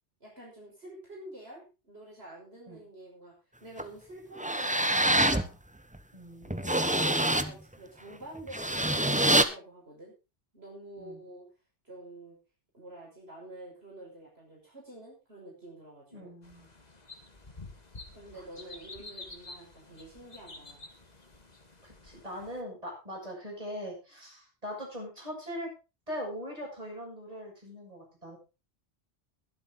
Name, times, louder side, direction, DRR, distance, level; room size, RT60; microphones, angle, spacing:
voice 1, 0.2-3.3 3.6-5.6 6.6-10.1 10.5-11.4 11.8-12.4 12.7-16.3 18.1-20.9, right 1 dB, 60° right, -3 dB, 6.2 m, -48 dB
sound 1, 3.8-3.9 4.4-5.5 5.9-6.0 6.5-7.5 8.4-9.4, right 1 dB, 5° right, 0.9 m, -25 dB
voice 2, 6.1-6.8 11.0-11.2 16.1-16.7 18.3-18.4 21.8-25.7 26.1-28.4, equal, 30° right, -2 dB, 7.6 m, -41 dB
sound 2, 16.4-22.6, left 2 dB, 35° left, 2.0 m, -49 dB
22.5 x 8.0 x 3.8 m, 0.30 s
omnidirectional pair, 1.2 m